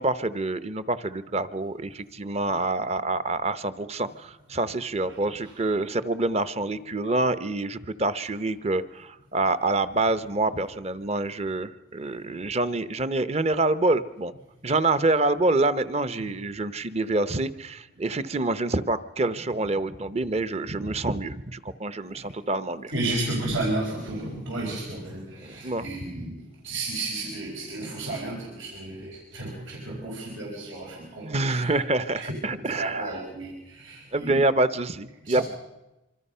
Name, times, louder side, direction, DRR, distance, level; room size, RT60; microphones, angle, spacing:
voice 1, 0.0-14.3 14.6-22.9 25.4-25.9 26.2-26.3 31.2-33.1 34.1-35.4, right 2 dB, 35° right, 14 dB, 0.9 m, -26 dB
voice 2, 22.9-31.7 32.2-34.4 35.3-35.4, right 2 dB, 85° right, -2 dB, 5.2 m, -33 dB
25.5 x 25.0 x 5.6 m, 1.0 s
head